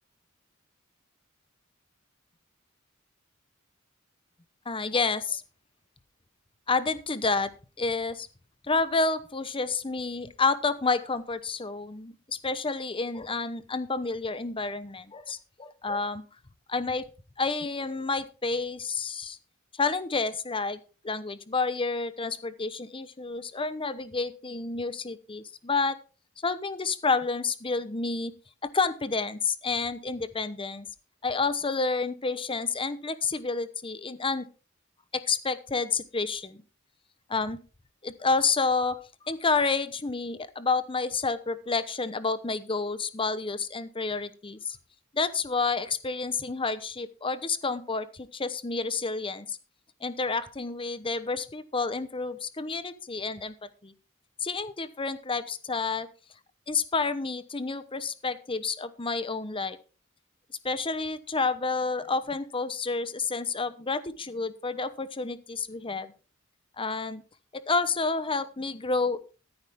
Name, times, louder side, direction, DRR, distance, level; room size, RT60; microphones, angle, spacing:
voice 1, 4.7-5.4 6.7-7.5 7.8-8.3 8.6-16.2 16.7-17.0 17.4-19.4 19.7-26.0 26.4-28.3 28.6-30.9 31.2-34.5 35.1-36.6 37.3-37.6 38.0-39.0 39.2-44.8 45.1-49.6 50.0-53.5 53.8-53.9 54.4-56.1 56.7-59.8 60.6-66.1 66.8-67.2 67.5-69.3, left 4 dB, 25° left, 13 dB, 1.0 m, -29 dB
14.0 x 8.9 x 3.7 m, 0.34 s
head